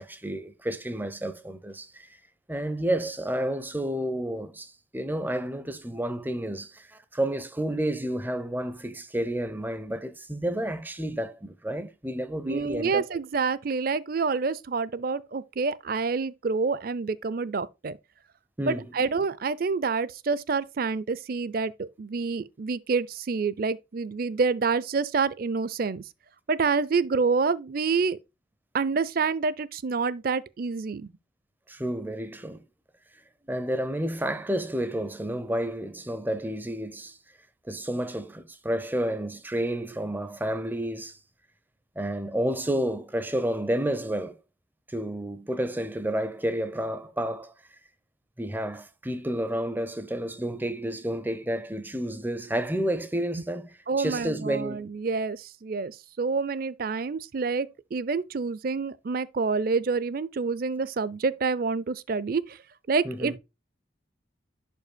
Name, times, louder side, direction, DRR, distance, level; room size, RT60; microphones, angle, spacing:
voice 1, 0.0-2.2 2.5-13.0 18.6-18.8 31.7-32.6 33.5-37.2 37.7-41.2 42.0-44.4 44.9-47.5 48.4-54.8 63.0-63.4, right 1 dB, 10° right, 0.6 m, -30 dB
voice 2, 12.5-18.0 18.7-26.0 26.5-28.2 28.7-31.1 53.9-62.6 62.9-63.4, right 4 dB, 45° right, 0.4 m, -27 dB
11.0 x 5.4 x 2.2 m
head